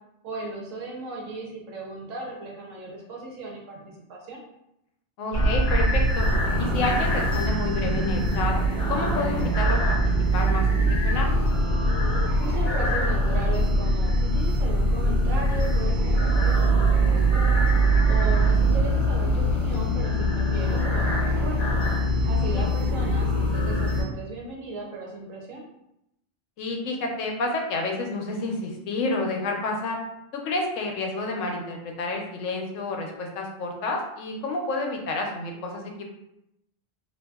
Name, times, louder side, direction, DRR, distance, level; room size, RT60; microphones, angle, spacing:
voice 1, 0.2-4.4 12.4-17.4 18.1-21.6 22.3-25.6, right 2 dB, 85° right, -2 dB, 1.1 m, -36 dB
voice 2, 5.2-6.3 6.6-8.6 8.9-10.0 10.3-11.4 22.1-22.7 26.6-30.0 30.3-36.0, left 2 dB, 80° left, 1 dB, 0.9 m, -30 dB
sound 1, 5.3-24.0, right 1 dB, 45° left, 0.8 m, -22 dB
2.6 x 2.6 x 2.3 m, 0.83 s
omnidirectional pair, 1.3 m